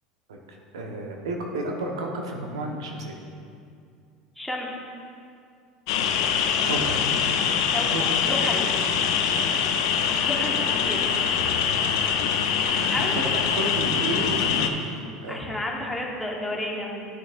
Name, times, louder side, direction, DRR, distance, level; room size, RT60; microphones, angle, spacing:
voice 1, 0.3-3.1 6.6-6.9 7.9-8.2 9.0-9.6 12.6-13.0 13.5-15.4, right 1 dB, 85° right, 1 dB, 1.2 m, -32 dB
voice 2, 4.4-4.9 7.7-7.9 8.2-8.7 10.1-11.1 12.9-13.2 15.3-17.1, left 1 dB, 5° left, -2 dB, 1.4 m, -31 dB
sound 1, 5.9-14.7, left 7 dB, 75° left, 0.6 m, -24 dB
11.5 x 6.3 x 2.6 m, 2.3 s
hypercardioid pair, 85°, 3 cm